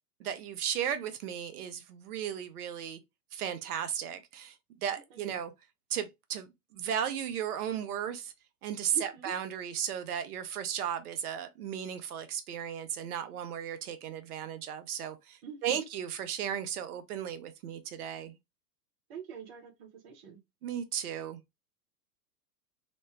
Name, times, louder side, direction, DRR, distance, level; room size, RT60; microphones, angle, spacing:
voice 1, 0.2-3.0 3.3-4.5 4.8-5.5 5.9-8.3 8.6-18.4 20.6-21.4, right 9 dB, 65° right, 0.8 m, -35 dB
voice 2, 8.9-9.3 15.4-15.8 19.1-20.4, right 6 dB, 20° right, 0.4 m, -45 dB
3.1 x 2.1 x 3.2 m
hypercardioid pair, 105°, 50 cm